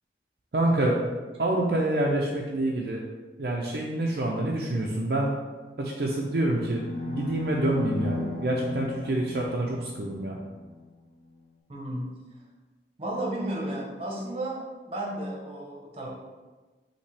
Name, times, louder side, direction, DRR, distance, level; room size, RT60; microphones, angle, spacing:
voice 1, 0.5-1.0 1.4-3.0 3.4-5.3 5.8-10.4, right 1 dB, 60° right, -2 dB, 0.5 m, -27 dB
sound 1, 6.5-10.8, left 2 dB, 35° left, 1.1 m, -35 dB
voice 2, 11.7-12.2 13.0-16.1, right 1 dB, 35° right, -3 dB, 0.9 m, -33 dB
5.4 x 2.9 x 3.3 m, 1.3 s
head